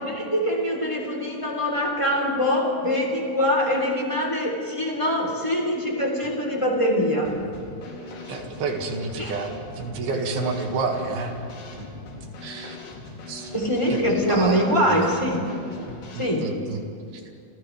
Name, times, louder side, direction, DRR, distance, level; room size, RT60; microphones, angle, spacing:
voice 1, 0.0-7.3 9.2-9.4 13.5-15.5 16.1-16.5, equal, 10° left, -2 dB, 3.1 m, -23 dB
Drum kit / Snare drum, 7.2-16.3, left 2 dB, 90° left, 4.8 m, -40 dB
voice 2, 8.3-11.3 11.7-11.8 12.4-12.8 13.3-13.5 13.9-14.0 14.3-15.1 15.9-16.8, right 4 dB, 90° right, 2 dB, 3.9 m, -30 dB
29.5 x 28.5 x 3.4 m, 2.5 s
omnidirectional pair, 4.2 m